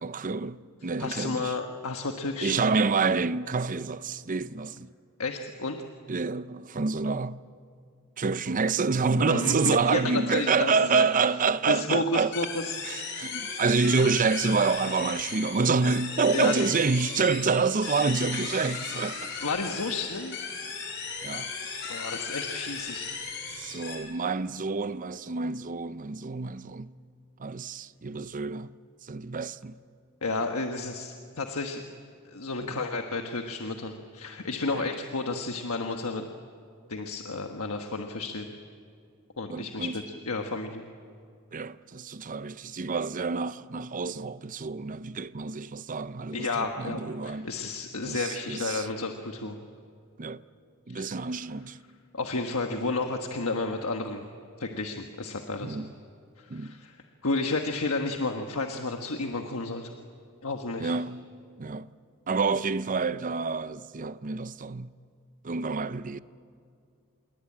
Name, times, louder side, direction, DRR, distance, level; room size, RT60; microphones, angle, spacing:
voice 1, 0.0-1.5 2.4-4.9 6.1-7.4 8.2-12.3 12.8-19.3 21.2-21.5 23.5-26.9 27.4-28.7 29.0-29.8 32.6-32.8 34.7-34.9 39.5-39.9 41.5-47.5 48.0-48.9 50.2-50.4 50.9-51.8 55.6-55.9 56.5-56.8 60.8-61.3 61.6-61.9 62.3-64.9 65.4-66.2, right 4 dB, 35° right, 0.6 m, -28 dB
voice 2, 1.0-2.6 5.2-5.8 9.2-11.0 11.7-12.7 16.3-16.5 19.4-20.4 21.9-23.1 23.6-23.8 30.2-31.8 32.3-36.2 36.9-38.4 39.4-40.8 46.3-49.6 50.9-51.2 52.1-54.2 54.6-55.8 56.4-57.0 57.2-59.9 60.4-60.9, left 3 dB, 70° left, 1.4 m, -32 dB
sound 1, 12.3-24.0, left 5 dB, 55° left, 5.4 m, -36 dB
27.0 x 22.5 x 8.8 m
head